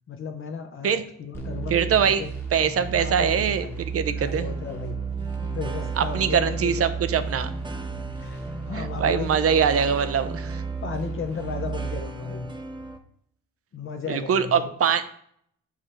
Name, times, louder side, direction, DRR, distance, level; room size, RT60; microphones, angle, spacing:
voice 1, 0.1-2.3 2.9-5.1 5.4-6.7 8.2-9.3 10.8-12.5 13.7-14.7, left 5 dB, 45° left, 5 dB, 0.7 m, -35 dB
sound 1, 1.3-12.0, right 6 dB, 5° left, 1.1 m, -33 dB
voice 2, 1.7-2.2 2.5-3.7 3.9-4.5 6.0-7.5 8.7-10.6 14.1-15.1, right 7 dB, 50° right, 12 dB, 0.6 m, -23 dB
sound 2, 4.4-13.0, right 1 dB, 15° right, 0.7 m, -40 dB
5.0 x 4.9 x 4.3 m, 0.66 s
cardioid pair, 90°, 30 cm